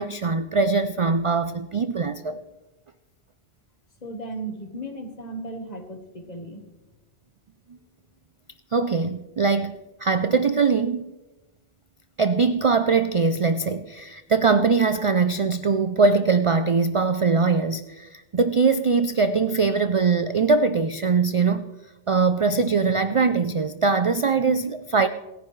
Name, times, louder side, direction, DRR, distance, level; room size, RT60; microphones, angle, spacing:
voice 1, 0.0-2.4 8.7-11.1 12.2-21.6 22.1-25.1, right 4 dB, 45° right, 0.4 m, -22 dB
voice 2, 4.0-6.6, right 2 dB, 40° left, 1.5 m, -35 dB
27.5 x 10.0 x 3.2 m
omnidirectional pair, 1.2 m